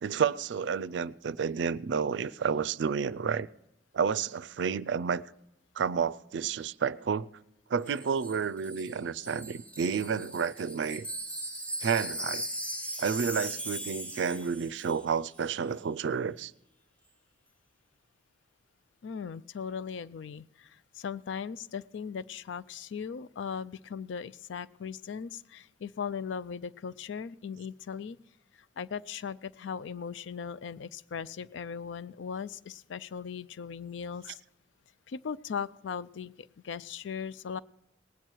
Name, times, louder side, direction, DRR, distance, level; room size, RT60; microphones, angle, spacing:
voice 1, 0.0-3.5 3.9-5.2 5.8-7.3 7.7-11.1 11.8-12.5 13.0-16.5, right 6 dB, 75° right, 0.4 m, -30 dB
Wind chime, 7.9-15.1 15.3-15.5, right 1 dB, 5° left, 1.0 m, -39 dB
voice 2, 19.0-28.2 28.8-34.4 35.1-37.6, left 6 dB, 85° left, 0.4 m, -38 dB
19.0 x 9.0 x 4.6 m
head